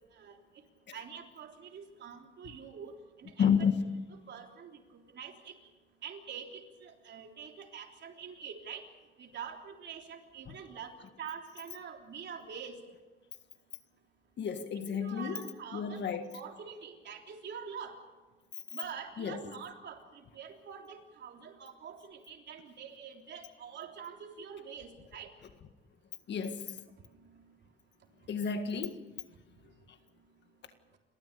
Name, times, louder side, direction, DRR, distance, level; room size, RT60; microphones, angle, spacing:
voice 1, 0.9-3.5 4.3-5.7 6.0-8.9 9.2-12.8 15.0-16.0 16.3-18.0 18.7-25.3 27.1-27.5 28.2-28.4, right 7 dB, 60° right, 3.5 m, -45 dB
voice 2, 3.4-3.7 10.5-10.6 14.4-15.4 15.7-16.4 19.2-19.5 26.3-26.8 28.3-29.1, left 7 dB, 60° left, 1.8 m, -31 dB
29.5 x 14.0 x 6.9 m
cardioid pair, 90°, 20 cm